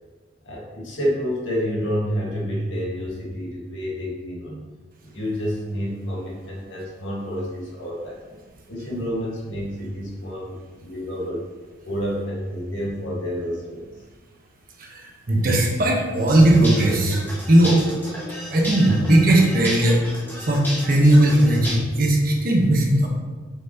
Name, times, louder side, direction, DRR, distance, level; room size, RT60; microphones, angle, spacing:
voice 1, 0.4-4.6 5.0-8.2 8.7-11.5 11.9-13.9, equal, 75° left, -4 dB, 1.8 m, -29 dB
voice 2, 14.8-17.2 17.5-17.8 18.5-20.0 20.4-23.1, right 1 dB, 45° right, 0 dB, 1.1 m, -17 dB
sound 1, 16.2-21.7, equal, 10° left, 1.6 m, -33 dB
6.8 x 5.6 x 2.9 m, 1.4 s
head